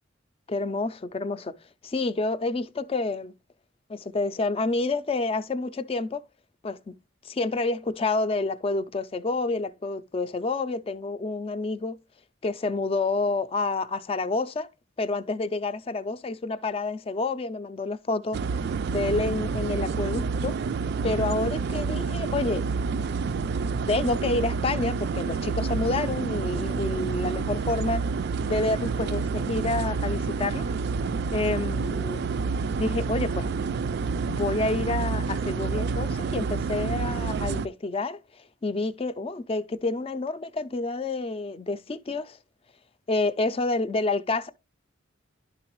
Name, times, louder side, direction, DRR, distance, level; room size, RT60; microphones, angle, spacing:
voice 1, 0.5-1.5 1.8-3.3 3.9-6.2 6.6-6.9 7.2-12.0 12.4-14.7 15.0-18.4 18.9-20.6 21.0-22.7 23.9-28.0 28.5-30.7 31.3-32.3 32.8-33.5 34.3-42.4 43.1-44.5, left 3 dB, 30° left, 0.4 m, -28 dB
sound 1, 18.3-37.7, right 4 dB, 55° right, 0.3 m, -28 dB
11.5 x 3.9 x 3.0 m
head